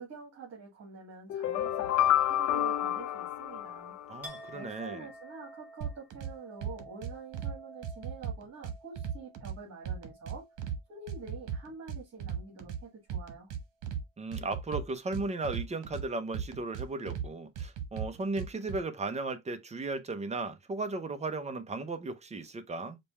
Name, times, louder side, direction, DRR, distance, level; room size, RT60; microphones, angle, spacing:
voice 1, 0.0-3.9 4.5-10.5 10.9-13.5, right 4 dB, 55° right, 2.2 m, -47 dB
sound 1, 1.3-4.4, left 12 dB, 60° left, 0.5 m, -29 dB
voice 2, 4.1-5.0 14.2-23.0, right 3 dB, 20° right, 0.6 m, -36 dB
Chink clink, 4.2-11.9 12.3-12.9, right 1 dB, 5° right, 1.4 m, -52 dB
sound 2, 5.8-6.3 6.6-7.5 7.8-9.6 9.9-10.8 11.1-12.8 13.1-14.0 14.3-16.0 16.3-17.3 17.6-18.8, right 8 dB, 75° right, 1.2 m, -36 dB
5.2 x 2.2 x 4.1 m
cardioid pair, 165°, 31 cm